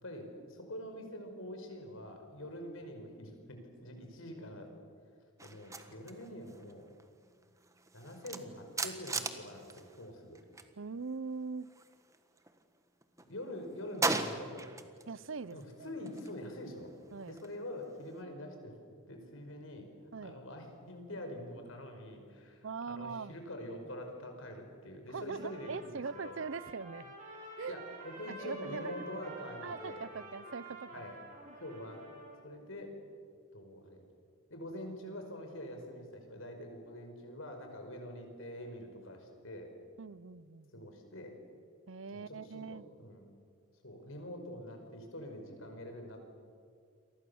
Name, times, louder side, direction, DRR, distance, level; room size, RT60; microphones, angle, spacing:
voice 1, 0.0-4.7 5.4-6.9 7.9-10.4 13.3-14.7 15.5-16.9 17.3-18.7 19.1-19.9 20.2-26.3 27.7-30.0 30.9-31.2 31.6-32.0 32.4-33.0 33.5-34.0 34.5-39.7 40.7-41.4 42.1-43.3 43.8-46.2, left 1 dB, 75° left, 4 dB, 5.5 m, -45 dB
sound 1, 5.4-10.7 11.0-12.6 13.0-15.1 15.4-18.2, right 3 dB, 15° right, 1.5 m, -40 dB
voice 2, 10.8-11.7 15.1-15.9 17.1-17.4 20.1-20.4 22.6-23.4 25.1-27.1 27.6-27.8 28.4-28.9 29.6-31.1 31.5-31.6 40.0-40.9 41.9-42.8, right 4 dB, 65° right, 19 dB, 0.7 m, -42 dB
Trumpet, 25.3-32.5, right 2 dB, 40° right, 7.5 m, -49 dB
29.0 x 24.0 x 7.2 m, 2.2 s
head